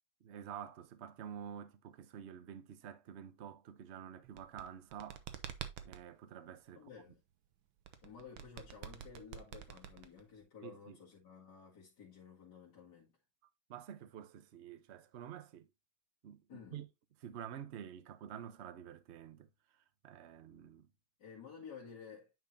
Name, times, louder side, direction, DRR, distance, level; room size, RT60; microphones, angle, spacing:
voice 1, 0.2-5.2 5.8-6.9 10.6-11.0 13.7-15.7 16.2-16.9 17.2-19.5 20.0-20.9, right 9 dB, 55° right, 0.8 m, -49 dB
sound 1, 4.2-6.0 7.8-10.4, right 10 dB, 90° right, 1.6 m, -47 dB
voice 2, 6.7-7.2 8.0-13.1 16.5-16.8 21.2-22.3, left 6 dB, 55° left, 2.5 m, -53 dB
9.3 x 5.3 x 2.7 m
omnidirectional pair, 2.1 m